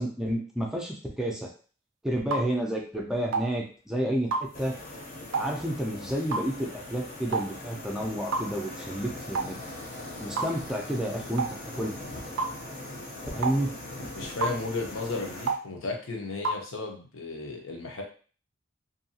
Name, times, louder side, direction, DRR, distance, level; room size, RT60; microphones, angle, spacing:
voice 1, 0.0-1.5 2.0-4.7 5.4-9.6 10.2-11.5 11.8-11.9 13.3-13.7, right 1 dB, 5° right, -1 dB, 0.4 m, -30 dB
sound 1, 2.3-2.5 3.3-3.5 4.3-4.5 5.3-5.5 6.3-6.5 7.3-7.5 8.3-8.5 9.3-9.5 10.4-10.6 11.4-11.5 12.4-12.5 13.4-13.6 14.4-14.6 15.5-15.6 16.4-16.6, right 4 dB, 75° right, 0.4 m, -29 dB
sound 2, 4.5-15.5, left 1 dB, 45° left, 0.6 m, -41 dB
voice 2, 14.2-18.0, left 3 dB, 85° left, 2 dB, 0.7 m, -34 dB
2.6 x 2.3 x 2.7 m, 0.39 s
head